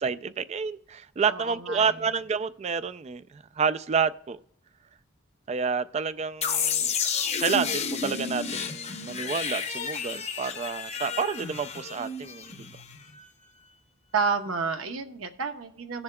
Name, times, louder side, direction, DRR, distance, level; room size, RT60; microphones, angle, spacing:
voice 1, 0.0-4.4 5.5-6.9 7.4-12.7, right 5 dB, 30° right, 0.3 m, -29 dB
voice 2, 1.3-1.9 14.1-16.0, right 5 dB, 75° right, 0.9 m, -30 dB
sound 1, 6.4-13.2, left 6 dB, 30° left, 0.7 m, -31 dB
17.5 x 7.1 x 2.2 m
head